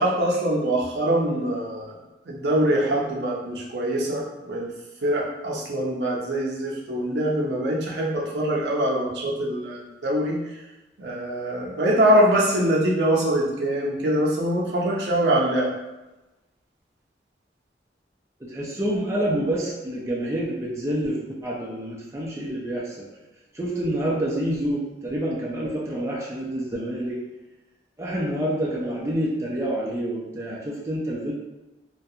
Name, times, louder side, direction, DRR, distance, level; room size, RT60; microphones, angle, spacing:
voice 1, 0.0-1.9 2.3-4.7 5.0-10.4 11.0-15.7, right 1 dB, 70° right, -3 dB, 0.6 m, -23 dB
voice 2, 18.4-23.1 23.5-27.2 28.0-31.3, right 1 dB, 15° right, -5 dB, 0.4 m, -27 dB
2.3 x 2.2 x 2.7 m, 1.1 s
head